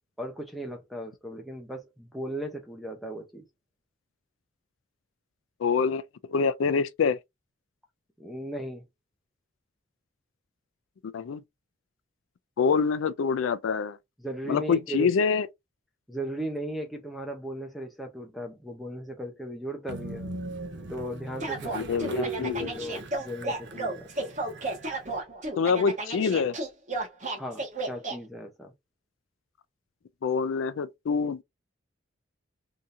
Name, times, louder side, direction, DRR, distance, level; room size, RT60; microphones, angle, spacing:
voice 1, 0.2-3.4 8.2-8.8 14.2-15.1 16.1-20.3 20.9-24.3 27.4-28.7, right 1 dB, ahead, 0.8 m, -37 dB
voice 2, 5.6-6.0 6.3-7.2 11.1-11.4 12.6-14.0 14.5-15.5 21.7-22.7 25.6-26.5 30.2-31.4, left 5 dB, 85° left, 0.4 m, -26 dB
Train, 19.9-25.2, right 2 dB, 60° right, 0.8 m, -39 dB
sound 1, 21.4-28.2, right 2 dB, 40° right, 1.4 m, -33 dB
3.6 x 2.8 x 2.6 m
head